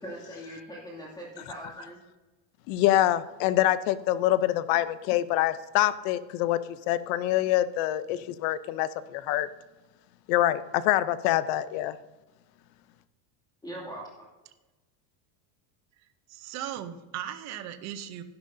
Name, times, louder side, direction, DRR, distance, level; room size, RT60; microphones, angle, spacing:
voice 1, 0.0-2.0 13.6-14.1, right 1 dB, 10° left, -4 dB, 2.4 m, -41 dB
voice 2, 2.7-6.6 6.9-9.5 10.3-12.0, left 14 dB, 55° left, 15 dB, 0.7 m, -25 dB
voice 3, 16.3-18.2, right 10 dB, 35° right, 10 dB, 0.7 m, -37 dB
12.5 x 10.5 x 2.7 m, 1.1 s
cardioid pair, 160°, 50 cm